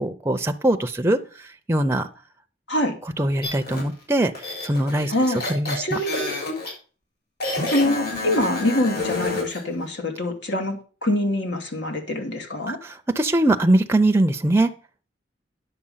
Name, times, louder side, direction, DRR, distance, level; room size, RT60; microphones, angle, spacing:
voice 1, 0.0-2.1 3.2-4.3 4.6-6.0 12.7-14.7, right 1 dB, 15° right, 7 dB, 0.6 m, -22 dB
sound 1, 3.4-3.8 4.3-6.7 7.4-9.6, left 2 dB, 60° left, 5.2 m, -29 dB
voice 2, 5.1-5.4 5.8-6.4 7.7-12.8, left 1 dB, 80° left, 4 dB, 2.4 m, -24 dB
9.9 x 7.0 x 5.6 m, 0.38 s
head